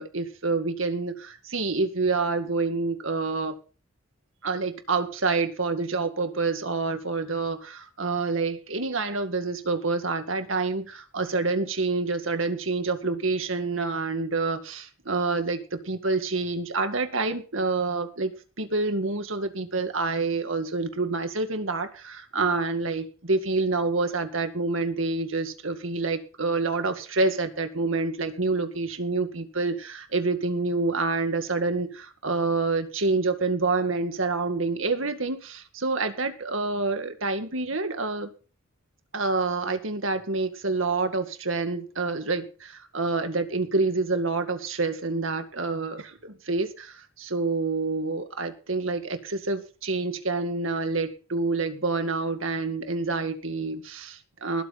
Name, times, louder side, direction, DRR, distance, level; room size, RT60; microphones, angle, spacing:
voice 1, 0.0-3.5 4.4-18.3 18.6-38.3 39.1-54.6, right 3 dB, 70° right, 8 dB, 2.1 m, -27 dB
20.0 x 8.7 x 4.2 m, 0.35 s
head